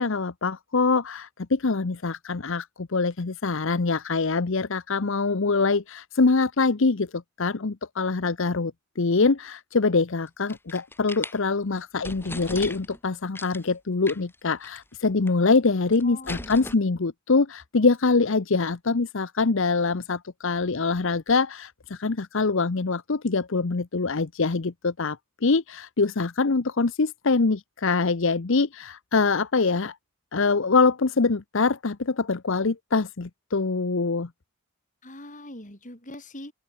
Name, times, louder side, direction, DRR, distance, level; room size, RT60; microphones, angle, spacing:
voice 1, 0.0-29.9 30.3-34.3, left 4 dB, 60° left, 0.8 m, -24 dB
sound 1, 10.3-11.4 11.8-11.9 12.0-13.0 13.4-13.7 14.1-14.4 14.6-14.8 15.0-15.7 15.9-16.8, left 2 dB, 10° left, 3.0 m, -38 dB
voice 2, 16.0-16.9 35.0-36.5, left 1 dB, 35° left, 5.9 m, -42 dB
open air
head